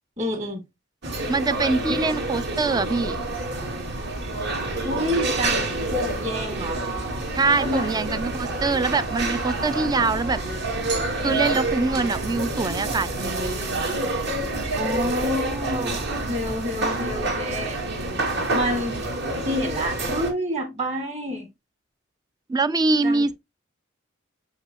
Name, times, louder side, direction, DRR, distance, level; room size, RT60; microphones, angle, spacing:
voice 1, 0.2-0.6 1.9-2.0 4.8-6.8 7.6-7.9 14.7-17.8 18.5-19.0 19.5-21.5 23.0-23.3, equal, 35° right, 2.3 m, -28 dB
sound 1, 1.0-20.3, right 2 dB, 60° right, 2.2 m, -28 dB
voice 2, 1.3-3.2 7.3-10.4 11.2-13.6 22.5-23.3, right 3 dB, 20° right, 0.4 m, -24 dB
sound 2, 2.9-17.3, equal, 90° right, 2.5 m, -40 dB
6.1 x 5.5 x 2.9 m
head